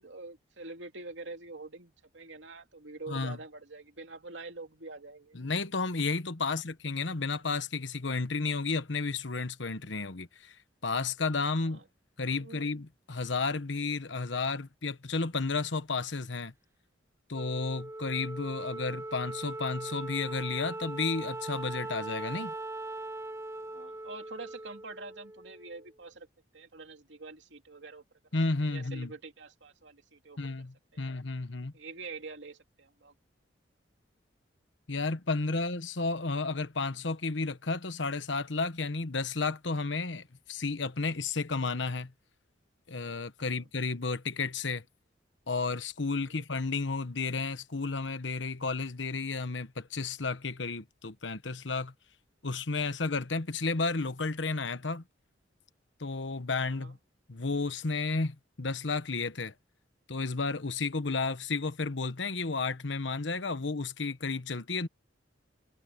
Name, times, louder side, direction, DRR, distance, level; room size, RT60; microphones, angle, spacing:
voice 1, 0.0-5.4 6.4-6.6 11.6-11.8 12.3-12.7 23.6-26.3 26.5-28.0 28.6-30.4 30.9-31.1 31.7-33.1 43.5-43.6 46.3-46.4 56.7-56.9, right 3 dB, 70° right, 2.7 m, -46 dB
voice 2, 3.1-3.4 5.3-10.5 10.8-11.8 12.2-16.5 17.3-22.5 28.3-29.1 30.4-31.7 34.9-42.1 42.9-44.8 45.5-51.9 52.4-55.0 56.0-57.0 57.3-59.5 60.1-64.9, left 3 dB, 70° left, 1.2 m, -32 dB
Wind instrument woodwind instrument, 17.3-25.9, right 2 dB, 15° right, 0.5 m, -40 dB
head